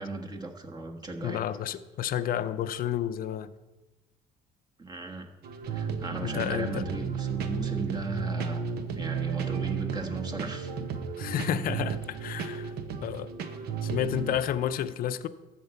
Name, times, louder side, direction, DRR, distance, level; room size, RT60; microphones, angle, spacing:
voice 1, 0.0-1.4 4.8-5.3 5.7-8.6 9.0-10.7, right 2 dB, 25° right, 1.5 m, -36 dB
voice 2, 1.2-3.5 6.2-6.9 11.2-12.7 13.0-13.3 13.8-15.3, left 10 dB, 60° left, 0.6 m, -31 dB
sound 1, 5.4-14.4, right 6 dB, 70° right, 1.1 m, -33 dB
13.0 x 4.4 x 8.0 m
cardioid pair, 110°, 17 cm